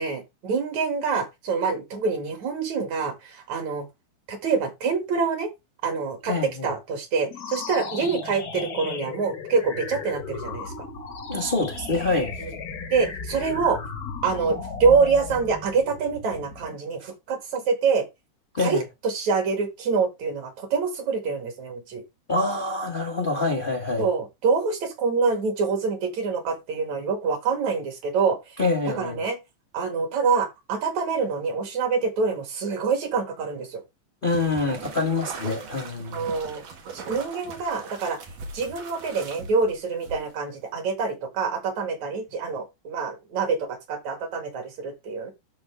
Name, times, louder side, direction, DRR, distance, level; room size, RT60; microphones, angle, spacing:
voice 1, 0.0-3.8 4.3-5.5 5.8-10.7 12.4-12.5 12.9-13.8 14.2-18.0 18.6-22.0 24.0-28.4 29.0-29.4 29.7-33.8 36.1-36.6 36.9-38.2 38.5-45.3, right 5 dB, 65° right, 3.2 m, -26 dB
voice 2, 6.2-6.7 11.3-12.4 17.0-17.1 18.5-18.8 22.3-24.1 28.6-29.2 34.2-36.3, left 3 dB, 85° left, 0.4 m, -26 dB
sound 1, 7.2-16.8, left 5 dB, 55° left, 1.0 m, -35 dB
sound 2, 34.3-40.6, right 4 dB, 85° right, 3.4 m, -40 dB
12.5 x 4.4 x 3.3 m
omnidirectional pair, 3.6 m